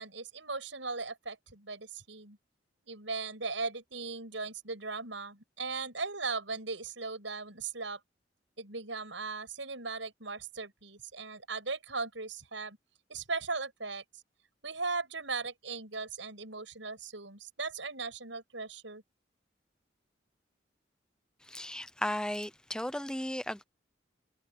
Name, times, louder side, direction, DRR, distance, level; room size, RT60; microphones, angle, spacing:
voice 1, 0.0-2.4 2.8-8.0 8.6-12.8 13.1-14.0 14.6-19.0, right 4 dB, 80° right, 7.4 m, -38 dB
voice 2, 21.5-23.6, left 1 dB, 5° left, 0.7 m, -35 dB
head